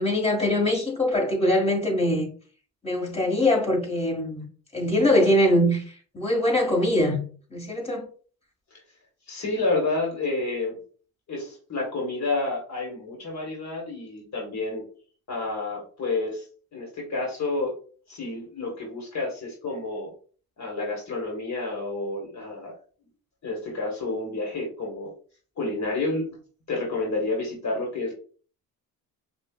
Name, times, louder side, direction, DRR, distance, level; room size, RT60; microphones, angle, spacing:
voice 1, 0.0-2.3 2.8-4.4 4.7-5.8 6.1-7.2 7.5-8.0, left 1 dB, 20° left, 1.9 m, -22 dB
voice 2, 9.3-10.8 11.3-14.8 15.3-16.4 16.7-17.7 18.1-20.1 20.6-22.7 23.4-25.1 25.6-26.2 26.7-28.1, left 2 dB, 50° left, 1.5 m, -29 dB
5.4 x 2.5 x 2.4 m
supercardioid pair, 75°, 35 cm